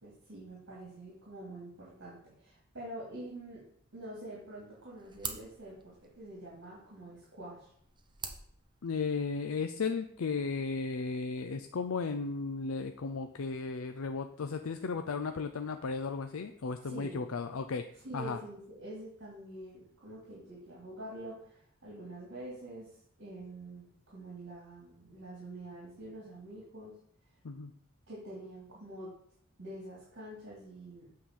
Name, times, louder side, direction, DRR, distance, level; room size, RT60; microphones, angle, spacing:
voice 1, 0.0-3.6 3.9-7.7 16.8-17.3 18.0-26.9 28.1-29.1 29.6-31.1, right 1 dB, 60° right, -6 dB, 3.2 m, -46 dB
sound 1, 4.4-9.4, right 6 dB, 20° right, 0.9 m, -47 dB
voice 2, 8.8-17.8 18.1-18.4 27.4-27.7, left 4 dB, 75° left, 7 dB, 0.5 m, -35 dB
8.7 x 3.9 x 7.0 m, 0.65 s
head